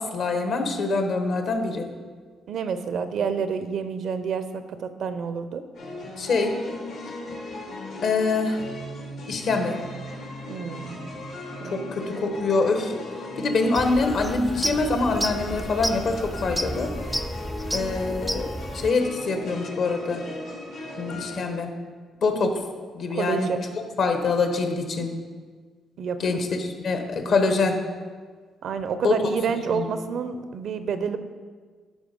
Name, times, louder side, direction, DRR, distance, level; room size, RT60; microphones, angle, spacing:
voice 1, 0.0-1.9 6.2-6.6 8.0-8.6 9.3-9.8 11.6-12.9 13.4-16.9 17.7-18.5 18.7-20.3 21.0-21.7 22.2-22.6 22.9-23.5 24.0-25.1 26.2-27.8 29.0-29.1 29.7-29.9, left 3 dB, 65° left, 5 dB, 1.3 m, -24 dB
voice 2, 2.5-5.6 10.5-11.1 11.6-11.8 23.1-23.6 26.0-26.2 28.6-31.2, right 6 dB, 65° right, 11 dB, 0.6 m, -28 dB
sound 1, 5.7-21.4, left 2 dB, 80° left, 2.3 m, -37 dB
sound 2, 13.7-18.9, right 1 dB, 5° right, 0.5 m, -31 dB
11.5 x 4.3 x 5.3 m, 1.5 s
cardioid pair, 90°, 0 cm